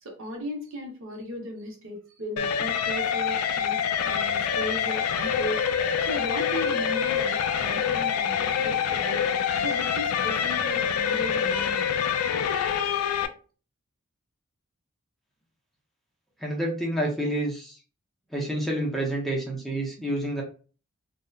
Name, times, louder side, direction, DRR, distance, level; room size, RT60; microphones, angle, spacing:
voice 1, 0.0-3.8 4.0-9.2 9.6-11.9, equal, 65° right, 2 dB, 0.7 m, -36 dB
sound 1, 2.4-13.3, left 7 dB, 90° left, 0.3 m, -26 dB
voice 2, 16.4-17.8 18.3-20.4, right 1 dB, ahead, -2 dB, 0.5 m, -28 dB
2.7 x 2.0 x 2.2 m, 0.37 s
head